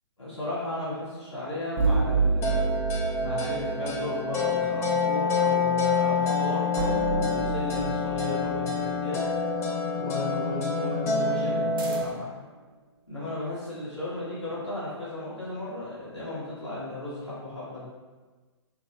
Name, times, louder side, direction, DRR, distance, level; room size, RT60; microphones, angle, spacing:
voice 1, 0.2-2.6 3.2-6.7 7.2-9.2 9.9-12.3 13.1-17.8, left 1 dB, 85° left, -11 dB, 1.3 m, -35 dB
sound 1, 1.8-4.5 6.8-9.4 11.8-12.4, right 4 dB, 50° right, 0.5 m, -29 dB
sound 2, 2.4-12.0, left 4 dB, 15° left, 0.4 m, -27 dB
2.9 x 2.9 x 2.5 m, 1.3 s
figure-of-eight pair, 120°, 14 cm